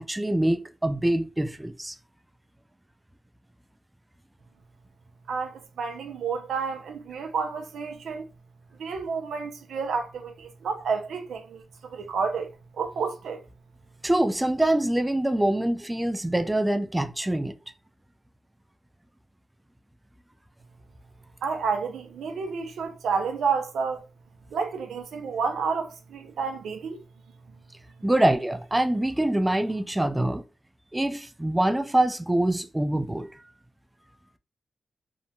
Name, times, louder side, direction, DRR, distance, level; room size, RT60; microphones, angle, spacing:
voice 1, 0.0-1.9 14.0-17.5 28.0-30.4 30.9-33.3, right 1 dB, 15° right, 0.4 m, -24 dB
voice 2, 5.3-8.3 8.8-13.4 21.4-24.1 24.5-27.0, right 5 dB, 85° right, 0.4 m, -30 dB
2.8 x 2.1 x 2.6 m
cardioid pair, 50°, 0 cm